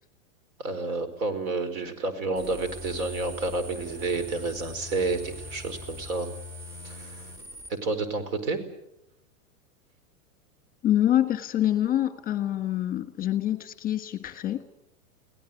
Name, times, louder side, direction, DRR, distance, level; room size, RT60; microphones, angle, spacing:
voice 1, 0.6-6.3 6.8-7.2 7.7-8.6, right 3 dB, 70° right, 10 dB, 5.0 m, -30 dB
sound 1, 2.4-7.7, left 1 dB, 30° right, 4.1 m, -41 dB
voice 2, 10.8-14.6, left 12 dB, 20° left, 10 dB, 1.6 m, -26 dB
24.5 x 17.5 x 9.3 m, 0.84 s
supercardioid pair, 140°, 43 cm